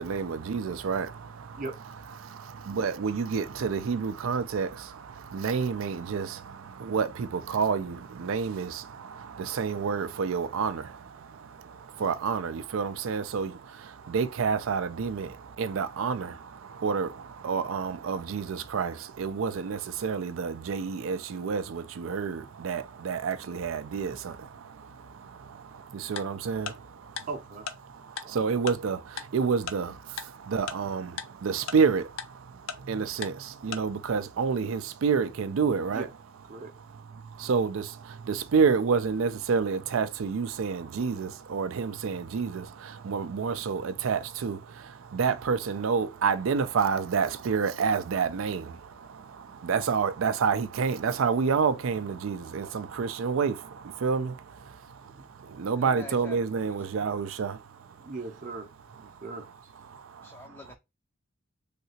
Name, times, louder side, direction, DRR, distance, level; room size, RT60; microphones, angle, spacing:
voice 1, 0.0-1.6 2.2-27.3 27.9-36.1 36.5-36.6 37.2-58.1 59.9-60.4, right 5 dB, 80° right, 0.4 m, -29 dB
Tick-tock, 26.2-26.3 26.7-26.8 27.2-27.3 27.7-27.8 28.2-28.3 28.7-28.8 29.2-29.3 29.7-29.8 30.2-30.3 30.7-30.8 31.2-31.3 31.7-31.8 32.2-32.3 32.7-32.8 33.2-33.3 33.7-33.8, left 7 dB, 75° left, 0.5 m, -34 dB
voice 2, 27.3-27.6 28.2-28.4 35.9-36.1 36.5-36.7 55.1-55.2 58.0-59.7, right 3 dB, 40° right, 0.7 m, -39 dB
voice 3, 55.8-57.2 60.2-60.8, left 2 dB, 10° left, 0.4 m, -47 dB
3.3 x 2.8 x 2.7 m
head